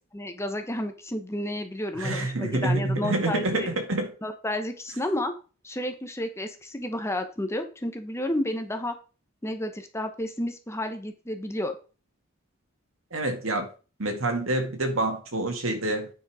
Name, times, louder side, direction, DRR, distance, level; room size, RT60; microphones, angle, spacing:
voice 1, 0.1-3.7 4.2-5.3 5.6-8.9 9.4-11.8, left 1 dB, 15° left, 1.1 m, -31 dB
voice 2, 2.0-4.1 13.1-13.7 14.0-16.1, right 2 dB, 85° right, 2.1 m, -27 dB
9.4 x 5.4 x 5.0 m
head